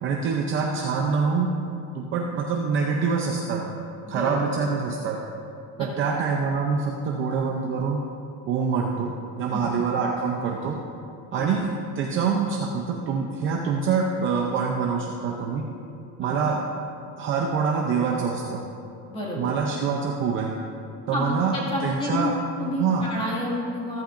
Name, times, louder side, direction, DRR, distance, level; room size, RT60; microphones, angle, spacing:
voice 1, 0.0-1.5 1.9-3.7 4.1-5.2 5.8-8.1 8.5-10.8 11.3-15.7 16.2-16.6 17.2-18.6 19.4-20.5 21.1-21.5 21.8-22.4 22.8-23.1, right 5 dB, 30° right, 0 dB, 0.6 m, -25 dB
voice 2, 19.1-19.5 21.1-24.0, left 1 dB, 15° left, -4 dB, 2.0 m, -30 dB
14.5 x 14.0 x 2.6 m, 2.7 s
cardioid pair, 175°, 42 cm